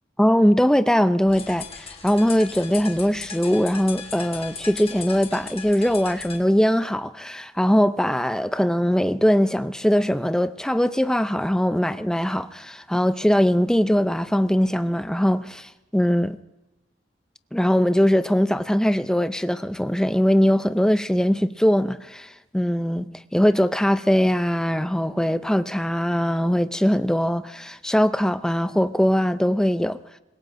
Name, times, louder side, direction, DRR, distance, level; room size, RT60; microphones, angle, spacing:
voice 1, 0.2-16.4 17.5-30.0, equal, 5° left, 0.5 m, -21 dB
sound 1, 1.3-6.4, left 6 dB, 30° left, 1.4 m, -38 dB
25.5 x 21.0 x 2.6 m
head